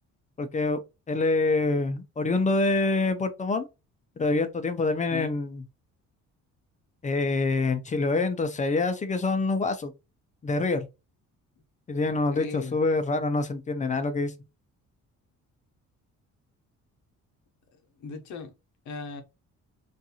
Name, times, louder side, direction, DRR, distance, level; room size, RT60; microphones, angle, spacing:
voice 1, 0.4-0.8 1.1-3.7 4.2-5.6 7.0-9.9 10.4-10.9 11.9-14.3, left 3 dB, 25° left, 0.4 m, -26 dB
voice 2, 12.3-12.8 18.0-18.5 18.9-19.2, left 4 dB, 60° left, 0.8 m, -37 dB
2.6 x 2.4 x 2.7 m
cardioid pair, 100°, 32 cm